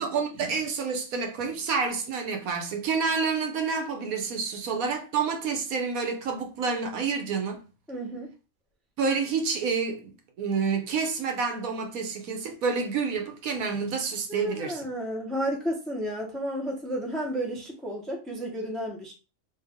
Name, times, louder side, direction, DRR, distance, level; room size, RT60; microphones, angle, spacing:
voice 1, 0.0-7.6 9.0-14.9, right 5 dB, 80° right, 1.2 m, -29 dB
voice 2, 7.9-8.3 14.3-19.1, equal, ahead, 0.6 m, -32 dB
3.4 x 2.5 x 3.5 m
omnidirectional pair, 1.5 m